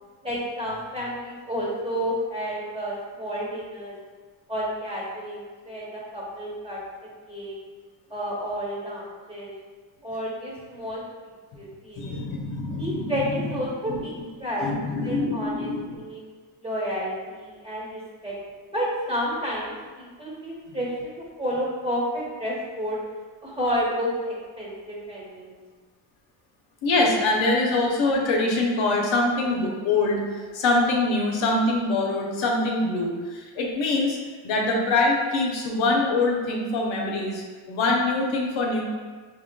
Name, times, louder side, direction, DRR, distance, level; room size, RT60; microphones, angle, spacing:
voice 1, 0.2-4.0 4.5-6.8 7.3-7.6 8.1-9.5 10.0-11.0 11.5-12.2 12.8-16.2 16.6-18.4 18.7-23.0 23.4-25.6, equal, 10° right, -6 dB, 1.1 m, -31 dB
voice 2, 12.0-13.2 13.9-14.0 14.6-16.0 26.8-34.2 34.4-38.8, left 2 dB, 70° left, -1 dB, 0.8 m, -24 dB
3.7 x 2.9 x 2.2 m, 1.5 s
cardioid pair, 80°, 49 cm